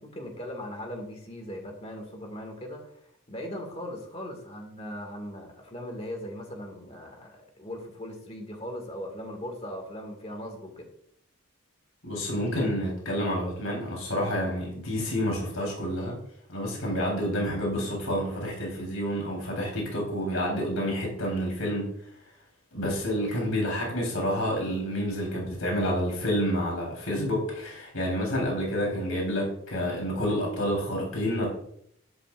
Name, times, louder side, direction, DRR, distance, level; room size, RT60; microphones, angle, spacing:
voice 1, 0.0-10.9, equal, 30° left, 3 dB, 2.0 m, -39 dB
voice 2, 12.0-16.2 16.5-21.9 22.7-31.5, equal, 75° left, -1 dB, 3.8 m, -29 dB
11.0 x 10.5 x 2.5 m, 0.70 s
head